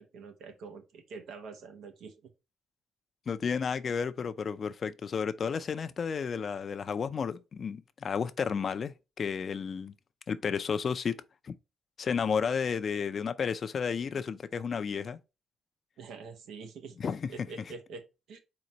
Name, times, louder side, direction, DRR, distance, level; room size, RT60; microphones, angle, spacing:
voice 1, 0.0-2.1 16.0-17.0 17.3-18.4, right 4 dB, 80° right, 1.0 m, -45 dB
voice 2, 3.3-9.9 10.3-11.5 12.0-15.2 17.0-17.3, left 6 dB, 45° left, 0.5 m, -32 dB
4.3 x 3.9 x 3.0 m
cardioid pair, 90°, 0 cm